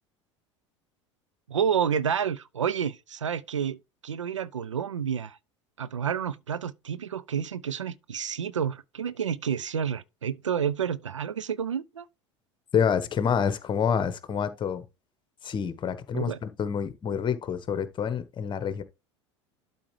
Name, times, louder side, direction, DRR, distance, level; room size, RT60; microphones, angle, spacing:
voice 1, 1.5-3.8 4.0-5.4 5.8-12.1 16.1-16.4, right 7 dB, 85° right, 0.5 m, -29 dB
voice 2, 12.7-14.8 15.4-18.8, left 7 dB, 30° left, 1.1 m, -27 dB
12.0 x 4.2 x 3.2 m
figure-of-eight pair, 75°, 15 cm